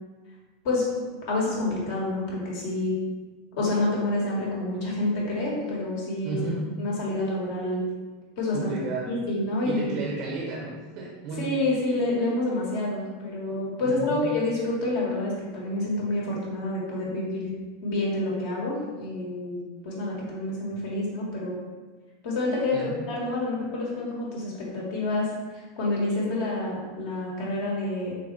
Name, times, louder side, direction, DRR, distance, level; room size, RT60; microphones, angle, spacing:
voice 1, 1.3-2.9 3.5-6.4 6.8-7.8 8.4-8.7 9.1-10.0 11.4-17.5 17.8-21.6 22.2-28.2, left 2 dB, 60° left, -4 dB, 1.5 m, -28 dB
voice 2, 6.2-6.6 8.5-9.1 9.6-11.4 13.8-14.2 22.7-23.0, right 3 dB, 55° right, -3 dB, 0.8 m, -33 dB
4.0 x 3.3 x 3.3 m, 1.3 s
hypercardioid pair, 85°, 0 cm